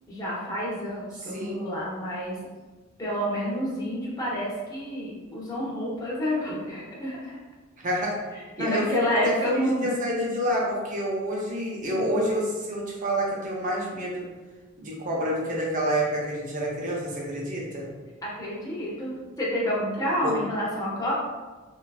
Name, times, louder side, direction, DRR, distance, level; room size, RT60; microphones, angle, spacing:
voice 1, 0.1-2.4 3.0-7.4 8.3-9.9 11.9-12.3 18.2-21.1, equal, 15° left, -6 dB, 0.7 m, -29 dB
voice 2, 7.8-8.2 8.6-8.9 9.2-14.2 14.8-17.9 20.2-20.3, equal, 40° right, -3 dB, 0.7 m, -28 dB
3.0 x 2.3 x 2.3 m, 1.3 s
head